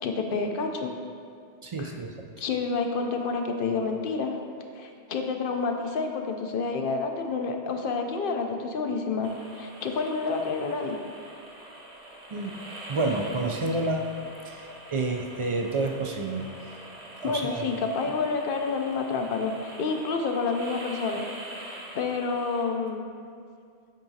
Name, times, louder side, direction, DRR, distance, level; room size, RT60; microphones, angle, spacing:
voice 1, 0.0-0.9 1.8-1.9 2.4-4.3 4.8-11.0 17.2-21.2 21.6-23.0, left 4 dB, 65° left, 4 dB, 0.7 m, -29 dB
voice 2, 1.6-2.1 12.3-12.5 12.9-14.1 14.4-16.8 17.2-17.7, right 2 dB, 55° right, 2 dB, 0.3 m, -29 dB
sound 1, 9.2-22.6, right 1 dB, 85° right, 1.2 m, -44 dB
9.1 x 4.7 x 2.7 m, 2.3 s
omnidirectional pair, 1.1 m